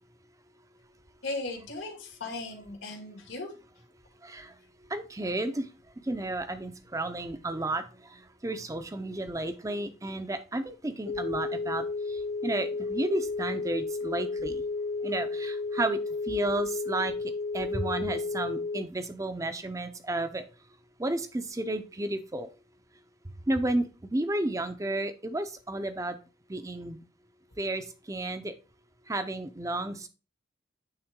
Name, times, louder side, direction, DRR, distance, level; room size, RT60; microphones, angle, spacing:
voice 1, 1.2-3.5, left 2 dB, 85° left, 2 dB, 2.1 m, -37 dB
voice 2, 4.2-4.5 4.9-5.7 6.1-7.8 8.1-14.6 15.0-16.0 16.3-17.1 17.5-20.4 21.0-22.5 23.5-26.2 26.5-27.0 27.6-28.5 29.1-30.1, right 2 dB, 15° right, 10 dB, 0.5 m, -32 dB
sound 1, 11.1-18.8, left 3 dB, 65° left, 0.4 m, -32 dB
8.8 x 3.6 x 3.7 m, 0.34 s
head